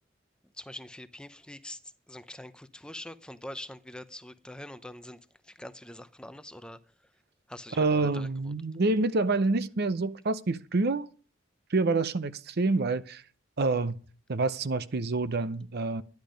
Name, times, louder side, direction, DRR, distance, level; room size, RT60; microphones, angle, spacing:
voice 1, 0.5-1.8 2.1-6.8 7.5-8.3, left 1 dB, 5° left, 0.6 m, -44 dB
voice 2, 7.8-11.1 11.7-13.2 13.6-14.0 14.3-16.0, right 3 dB, 55° right, 0.7 m, -27 dB
12.5 x 10.5 x 5.1 m
head